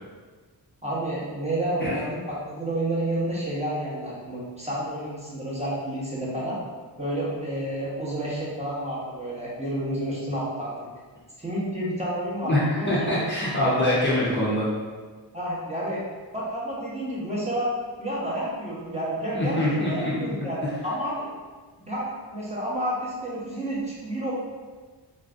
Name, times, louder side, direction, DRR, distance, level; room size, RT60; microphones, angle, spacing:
voice 1, 0.8-6.6 7.0-10.7 11.4-13.3 13.6-13.9 15.3-16.0 16.3-17.7 18.0-21.3 21.8-24.3, right 1 dB, 15° right, -7 dB, 0.7 m, -30 dB
voice 2, 12.4-14.7 19.3-20.3, left 1 dB, 30° left, -8 dB, 0.5 m, -24 dB
3.2 x 2.5 x 2.4 m, 1.4 s
wide cardioid pair, 135°, 42 cm